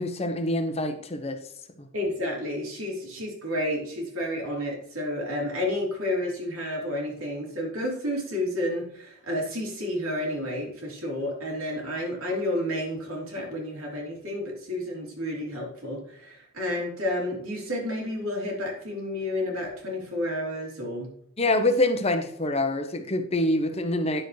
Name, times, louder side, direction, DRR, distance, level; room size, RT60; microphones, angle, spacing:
voice 1, 0.0-1.4 1.8-1.9 21.4-24.3, left 1 dB, 30° left, 7 dB, 0.9 m, -25 dB
voice 2, 1.9-21.1, left 1 dB, 85° right, -1 dB, 3.0 m, -31 dB
9.9 x 6.8 x 3.2 m, 0.69 s
head